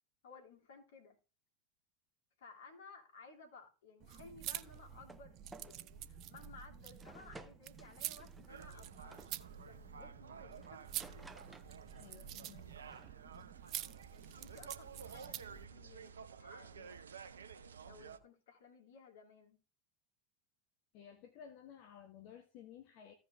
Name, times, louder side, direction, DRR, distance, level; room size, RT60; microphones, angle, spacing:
voice 1, 0.2-1.2 2.4-9.2 9.6-11.3 14.4-17.1 17.8-19.6, left 3 dB, 65° left, 3.0 m, -58 dB
sound 1, 4.0-15.7, right 12 dB, 45° right, 0.7 m, -48 dB
sound 2, 4.6-5.3 5.5-5.8 6.3-6.5 7.0-9.3 10.6-12.1 12.4-13.1, right 3 dB, 15° right, 0.9 m, -57 dB
sound 3, 8.5-18.2, right 6 dB, 80° right, 0.8 m, -53 dB
voice 2, 12.0-12.8 20.9-23.1, left 8 dB, 50° left, 1.2 m, -55 dB
15.5 x 5.3 x 3.5 m
figure-of-eight pair, 85°, 0 cm